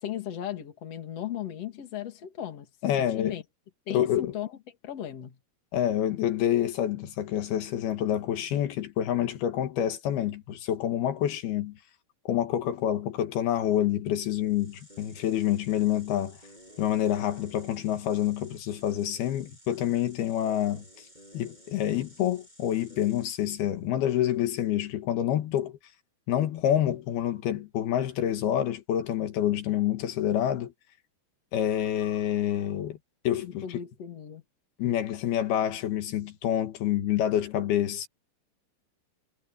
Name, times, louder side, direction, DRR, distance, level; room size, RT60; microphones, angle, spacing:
voice 1, 0.0-2.7 3.0-3.4 3.9-4.5 4.8-5.4 33.4-34.4, left 10 dB, 45° left, 3.1 m, -36 dB
voice 2, 2.8-3.4 3.9-4.3 5.7-11.8 12.3-16.4 16.8-21.1 21.3-25.8 26.3-30.7 31.5-33.0 33.3-33.8 34.8-38.1, left 11 dB, 80° left, 3.5 m, -27 dB
sound 1, 14.3-23.8, equal, 10° right, 7.6 m, -55 dB
omnidirectional pair, 4.4 m